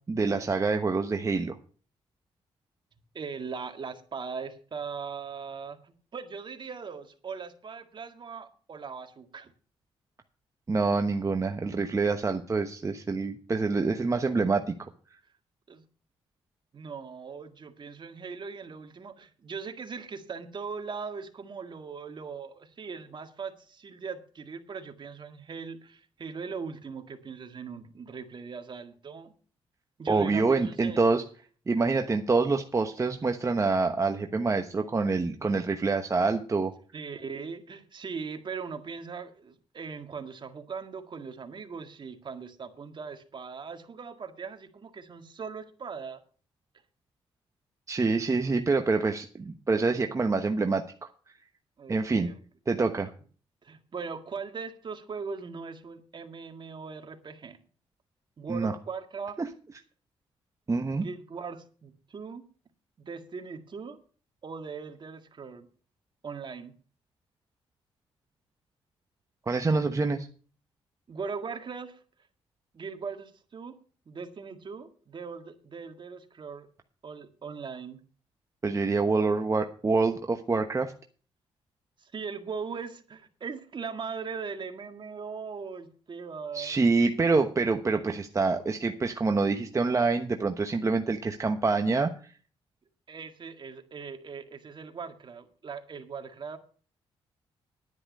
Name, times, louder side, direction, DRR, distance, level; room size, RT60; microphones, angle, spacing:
voice 1, 0.1-1.6 10.7-14.9 30.1-31.2 31.7-36.7 47.9-51.1 51.9-52.3 52.7-53.1 58.5-58.7 59.4-59.5 60.7-61.1 69.5-70.3 78.6-80.9 86.5-92.1, right 3 dB, 30° right, 6 dB, 1.1 m, -26 dB
voice 2, 3.1-9.5 15.7-15.8 16.7-29.3 30.0-31.0 36.9-46.2 51.8-52.4 53.6-57.6 58.4-59.4 60.9-62.5 63.0-64.0 64.4-65.7 66.2-66.7 71.1-72.0 72.7-73.8 74.1-76.7 77.0-78.0 82.0-86.9 87.6-87.8 93.1-96.6, right 5 dB, 45° right, 6 dB, 2.0 m, -40 dB
10.5 x 9.7 x 5.4 m, 0.40 s
cardioid pair, 75°, 11 cm